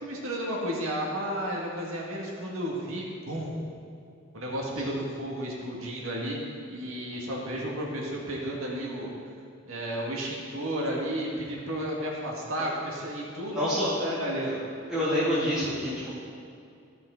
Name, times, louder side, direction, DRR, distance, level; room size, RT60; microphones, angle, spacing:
voice 1, 0.0-3.6 4.3-6.4 6.7-9.1 9.7-14.6, equal, 80° right, -2 dB, 1.8 m, -32 dB
voice 2, 13.5-13.9 14.5-14.6 14.9-16.1, equal, 5° right, -13 dB, 2.2 m, -27 dB
14.0 x 5.7 x 3.8 m, 2.4 s
head